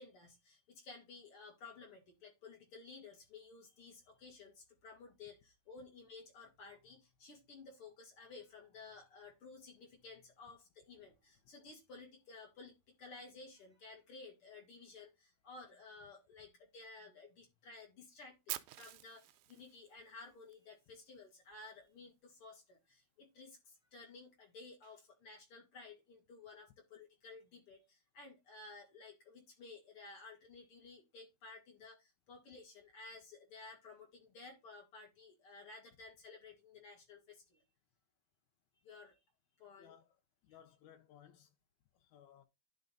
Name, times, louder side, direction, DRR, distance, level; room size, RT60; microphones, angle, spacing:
voice 1, 0.0-37.6 38.8-39.2 39.6-40.0 40.5-40.6, left 3 dB, 40° left, 2.8 m, -55 dB
Fire, 18.5-20.5, right 16 dB, 80° right, 2.2 m, -46 dB
voice 2, 39.8-40.2 40.4-41.6 41.9-42.4, left 9 dB, 75° left, 1.8 m, -61 dB
10.5 x 4.0 x 3.9 m
omnidirectional pair, 4.3 m